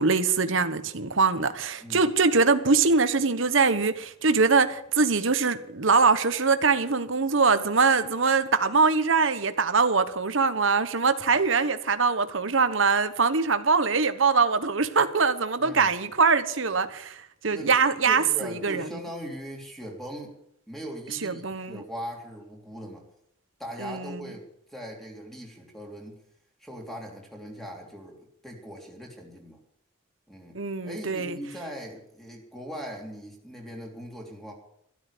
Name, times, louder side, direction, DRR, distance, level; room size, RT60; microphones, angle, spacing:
voice 1, 0.0-19.0 21.2-21.8 23.8-24.2 30.5-31.4, right 4 dB, 65° right, 1.2 m, -23 dB
voice 2, 15.6-15.9 17.5-17.8 18.0-20.3 20.7-23.0 23.6-26.2 26.6-29.6 30.3-30.6 30.8-34.5, equal, ahead, 3.4 m, -40 dB
13.0 x 12.5 x 6.9 m
head